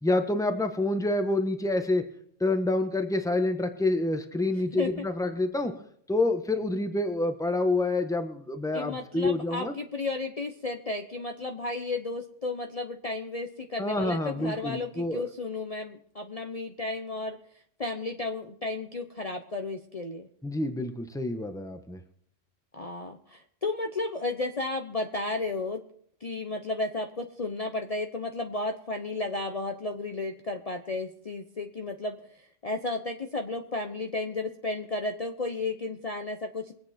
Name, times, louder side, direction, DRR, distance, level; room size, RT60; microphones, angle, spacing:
voice 1, 0.0-2.0 2.4-5.7 6.1-9.7 13.8-15.3 20.4-22.0, left 2 dB, 5° left, 7 dB, 1.1 m, -27 dB
voice 2, 4.7-5.0 8.7-17.4 17.8-20.3 22.7-25.8 26.2-32.2 32.6-36.7, left 3 dB, 35° left, 4 dB, 0.9 m, -33 dB
23.5 x 8.7 x 4.3 m, 0.64 s
omnidirectional pair, 1.3 m